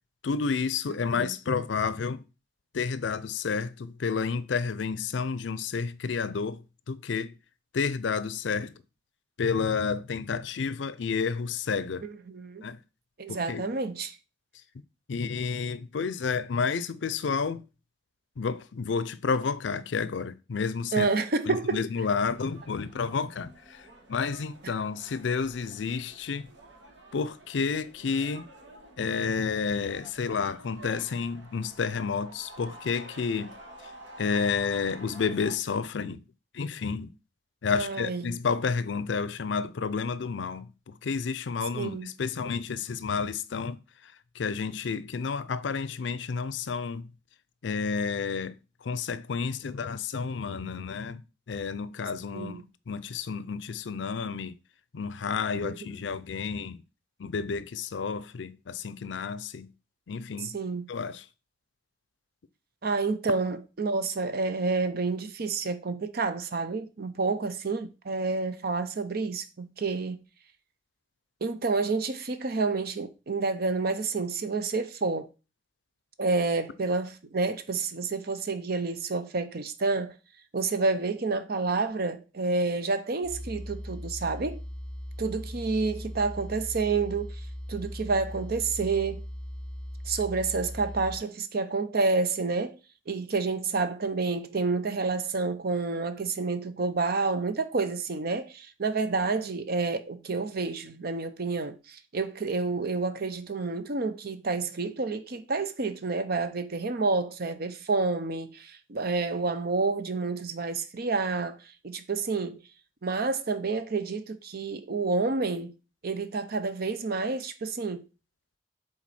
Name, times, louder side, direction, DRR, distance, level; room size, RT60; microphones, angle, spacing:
voice 1, 0.2-2.2 2.7-7.3 7.7-8.7 9.4-12.1 12.6-12.8 13.3-13.6 15.1-17.6 18.4-21.1 21.5-26.5 27.1-28.5 29.0-33.5 34.2-36.2 36.5-37.1 37.6-43.8 44.3-47.1 47.6-48.5 48.8-51.2 51.5-54.5 54.9-56.8 57.2-59.7 60.1-60.6 60.9-61.2, left 5 dB, 75° left, 0.5 m, -30 dB
voice 2, 12.0-12.6 13.2-14.2 20.9-21.8 37.7-38.4 41.8-42.1 52.3-52.6 55.6-55.8 60.4-60.9 62.8-70.2 71.4-75.3 76.2-80.2 80.5-84.6 85.2-87.4 87.7-89.3 90.1-92.8 93.1-112.6 113.0-115.7 116.0-118.0, right 3 dB, 55° right, 0.7 m, -29 dB
sound 1, 22.1-35.5, right 1 dB, 80° right, 1.6 m, -49 dB
sound 2, 83.2-91.2, equal, 5° left, 1.2 m, -39 dB
7.4 x 3.9 x 4.2 m
head